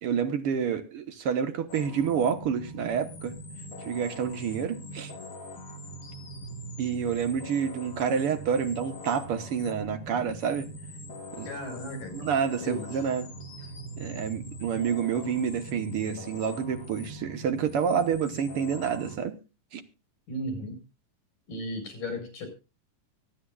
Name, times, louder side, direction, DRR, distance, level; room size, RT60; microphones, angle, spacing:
voice 1, 0.0-3.3 3.8-5.1 6.8-10.7 11.3-11.5 12.1-13.3 14.0-19.3 19.7-19.8, right 7 dB, 60° right, 1.6 m, -28 dB
sound 1, 1.7-19.2, right 1 dB, 40° left, 1.3 m, -42 dB
voice 2, 11.5-12.3 12.6-13.0 20.3-20.8 21.5-22.5, equal, 90° left, 6.4 m, -35 dB
24.0 x 9.3 x 2.3 m
omnidirectional pair, 3.7 m